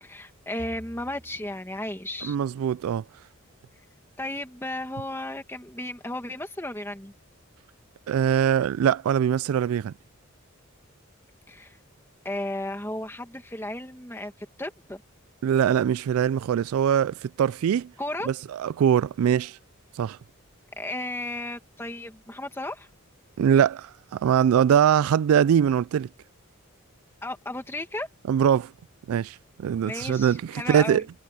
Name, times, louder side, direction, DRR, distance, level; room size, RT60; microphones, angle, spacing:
voice 1, 0.0-2.4 4.2-7.1 11.5-11.8 12.2-15.0 18.0-18.3 20.8-22.9 27.2-28.1 29.8-31.0, left 1 dB, 10° left, 1.8 m, -34 dB
Bowed string instrument, 0.6-4.1, equal, 25° right, 3.7 m, -51 dB
voice 2, 2.2-3.0 8.1-9.9 15.4-17.9 18.3-19.6 20.0-20.2 23.4-26.1 28.3-28.7 29.1-31.0, right 8 dB, 85° right, 0.3 m, -22 dB
head